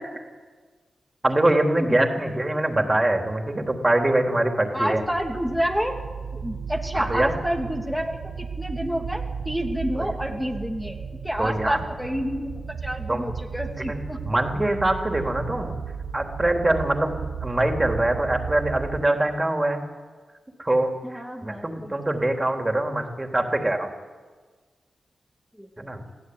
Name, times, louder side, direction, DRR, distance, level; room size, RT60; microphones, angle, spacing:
voice 1, 1.2-5.0 7.0-7.3 9.9-10.1 11.4-11.8 13.1-13.3 13.8-14.0 14.2-15.7 16.1-17.1 17.4-19.9 20.6-23.9 25.8-26.0, right 1 dB, 25° right, 3 dB, 3.6 m, -23 dB
voice 2, 4.7-5.9 6.3-11.0 11.2-14.2 21.0-21.9 25.6-25.9, equal, 5° left, 1 dB, 2.9 m, -29 dB
sound 1, 5.0-19.0, right 6 dB, 90° right, 1.5 m, -35 dB
23.0 x 15.5 x 9.6 m, 1.4 s
cardioid pair, 45°, 0 cm